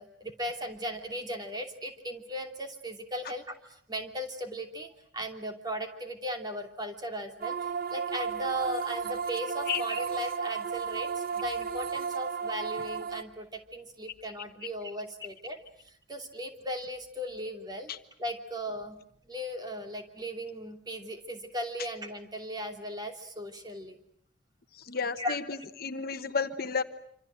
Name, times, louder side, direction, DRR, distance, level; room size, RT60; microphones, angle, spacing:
voice 1, 0.0-7.5 7.9-17.9 18.2-19.0 19.3-24.0 25.2-25.4, equal, 20° right, 4 dB, 2.9 m, -37 dB
sound 1, 7.4-13.2, right 6 dB, 45° right, 1.5 m, -33 dB
voice 2, 24.7-26.8, left 5 dB, 50° left, 9 dB, 1.2 m, -32 dB
27.0 x 27.0 x 7.8 m, 0.66 s
head